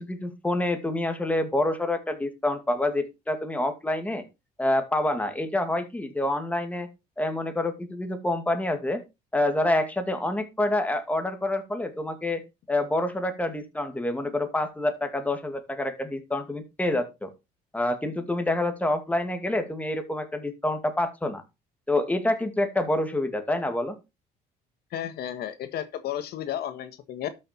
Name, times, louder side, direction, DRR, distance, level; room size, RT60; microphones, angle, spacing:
voice 1, 0.0-4.2 4.6-6.9 7.2-9.0 9.3-12.4 12.7-17.3 17.7-21.4 21.9-24.0, left 1 dB, 10° left, 2.2 m, -27 dB
voice 2, 24.9-27.3, left 10 dB, 70° left, 1.5 m, -33 dB
12.5 x 6.5 x 4.4 m
cardioid pair, 110°, 17 cm